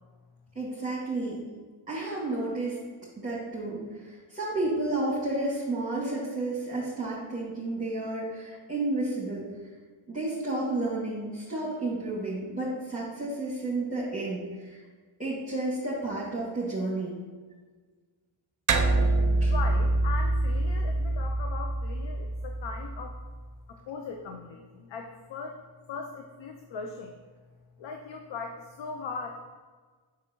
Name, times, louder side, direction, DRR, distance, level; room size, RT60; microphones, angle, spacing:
voice 1, 0.5-1.4 1.9-2.8 3.2-3.8 4.1-9.5 10.1-14.8 15.2-17.1 19.4-19.5, right 2 dB, 15° right, -7 dB, 2.2 m, -31 dB
sound 1, 18.7-23.4, right 2 dB, 40° right, 0.7 m, -26 dB
voice 2, 19.0-23.2 23.7-25.6 25.9-27.1 27.8-29.5, left 4 dB, 60° left, 3 dB, 0.8 m, -39 dB
7.1 x 6.4 x 3.0 m, 1.5 s
cardioid pair, 75°, 49 cm